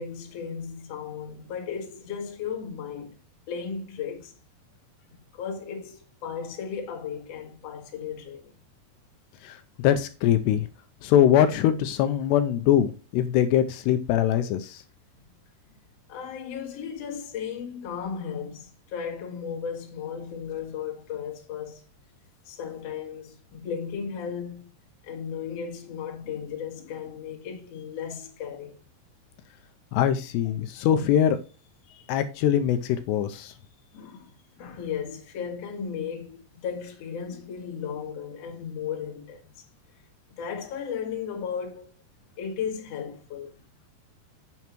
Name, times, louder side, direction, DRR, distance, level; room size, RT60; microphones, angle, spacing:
voice 1, 0.0-3.1 3.5-4.3 5.3-8.5 16.1-21.8 22.5-24.7 25.0-28.7 33.9-34.3 34.6-39.7 40.3-41.9 42.4-43.5, left 7 dB, 50° left, 2.1 m, -35 dB
voice 2, 9.8-10.7 11.0-14.8 29.9-31.4 32.1-33.5, left 10 dB, 85° left, 2.7 m, -22 dB
9.2 x 8.4 x 3.0 m
omnidirectional pair, 5.0 m